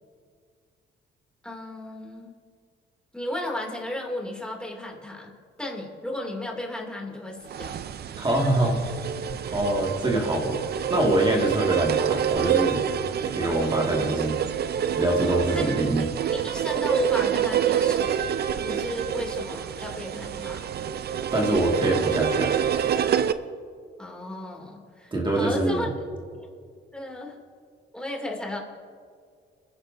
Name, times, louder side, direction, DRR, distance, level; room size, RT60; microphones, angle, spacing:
voice 1, 1.4-2.3 3.1-5.3 5.6-7.7 15.5-15.7 16.3-18.3 18.6-20.8 24.0-25.9 26.3-26.5 26.9-27.4 27.9-28.6, left 1 dB, 5° left, -1 dB, 2.7 m, -34 dB
sound 1, 7.5-23.3, right 9 dB, 55° right, 0.5 m, -27 dB
voice 2, 8.1-8.8 9.5-10.6 10.9-12.8 13.2-14.4 14.9-16.1 21.3-22.5 25.1-25.9, right 1 dB, 25° right, -1 dB, 2.0 m, -24 dB
29.0 x 10.5 x 2.7 m, 2.1 s
cardioid pair, 90°, 20 cm